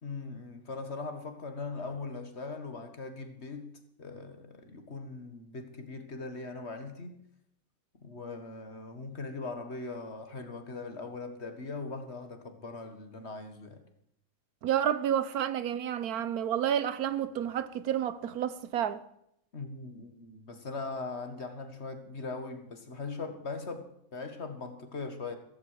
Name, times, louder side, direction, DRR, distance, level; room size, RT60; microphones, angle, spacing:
voice 1, 0.0-3.7 4.0-7.2 8.0-13.8 19.5-25.4, left 3 dB, 45° left, 2.0 m, -40 dB
voice 2, 14.6-19.0, right 9 dB, 85° right, 1.4 m, -30 dB
15.5 x 15.0 x 4.9 m
omnidirectional pair, 1.5 m